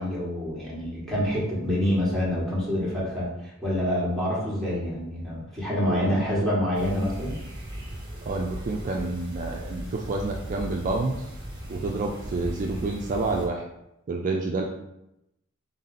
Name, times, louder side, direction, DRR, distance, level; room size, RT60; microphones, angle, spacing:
voice 1, 0.0-7.3, left 1 dB, ahead, -7 dB, 1.2 m, -27 dB
voice 2, 5.9-6.3 8.2-11.3 11.7-13.6 14.1-14.6, right 3 dB, 40° right, 1 dB, 0.3 m, -29 dB
sound 1, 6.7-13.5, equal, 25° right, 1.3 m, -37 dB
3.7 x 2.7 x 4.0 m, 0.85 s
head